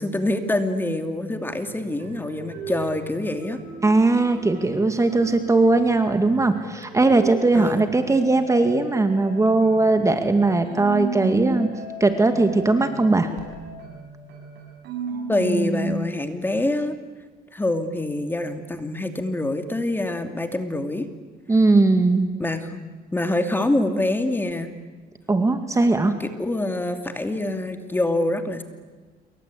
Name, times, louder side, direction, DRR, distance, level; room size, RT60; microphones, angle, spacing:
voice 1, 0.0-3.6 7.5-7.9 15.3-17.0 17.5-21.1 22.4-22.8 23.1-24.7 26.2-28.6, left 1 dB, 10° left, 7 dB, 2.6 m, -25 dB
sound 1, 1.5-7.7 8.1-16.1, right 3 dB, 75° right, 7.0 m, -35 dB
voice 2, 3.8-11.7 12.0-13.3 21.5-22.3 25.3-26.1, right 3 dB, 20° right, 7 dB, 2.2 m, -19 dB
28.0 x 23.5 x 8.6 m, 1.4 s
cardioid pair, 110°, 17 cm